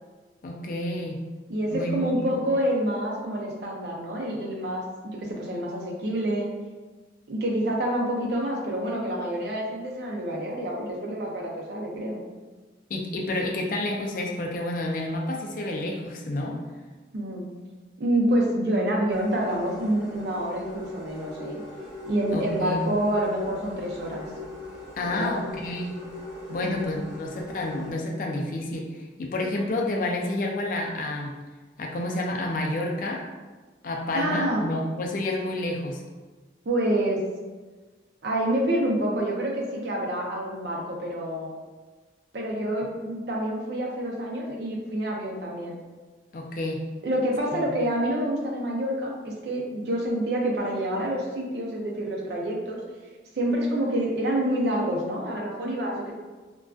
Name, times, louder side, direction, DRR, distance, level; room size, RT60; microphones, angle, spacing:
voice 1, 0.4-1.2 1.7-2.3 12.9-16.6 22.3-22.8 25.0-26.0 26.5-31.4 31.8-33.2 33.8-36.0 46.3-46.8 47.5-47.7, left 1 dB, 45° left, 0 dB, 0.3 m, -29 dB
voice 2, 1.5-6.5 7.3-12.2 17.1-17.5 18.0-21.6 22.1-24.3 25.2-25.3 26.6-26.9 34.1-34.6 36.7-37.2 38.2-41.5 42.3-45.8 47.0-52.8 53.4-56.1, right 1 dB, 65° right, -2 dB, 0.5 m, -27 dB
sound 1, 19.1-27.9, left 2 dB, 10° right, 0.7 m, -41 dB
2.4 x 2.2 x 2.3 m, 1.3 s
head